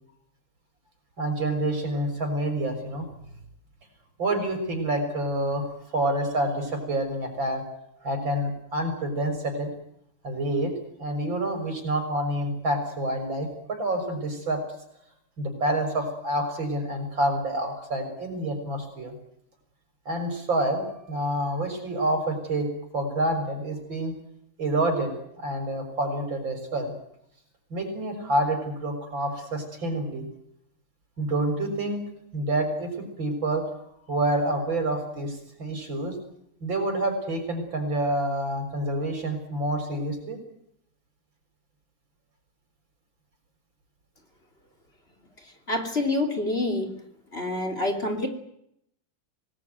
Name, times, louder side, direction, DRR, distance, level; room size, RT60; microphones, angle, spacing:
voice 1, 1.2-3.1 4.2-5.6 5.9-7.6 8.0-9.7 10.2-10.7 11.0-14.6 15.4-19.2 20.1-22.7 22.9-24.1 24.6-26.9 27.7-30.3 31.2-32.0 32.3-33.6 34.1-36.2 36.6-40.4, right 1 dB, 85° right, 5 dB, 7.0 m, -28 dB
voice 2, 45.7-47.0 47.3-48.3, left 2 dB, 30° left, 4 dB, 3.2 m, -27 dB
25.5 x 19.0 x 9.4 m, 0.75 s
omnidirectional pair, 2.0 m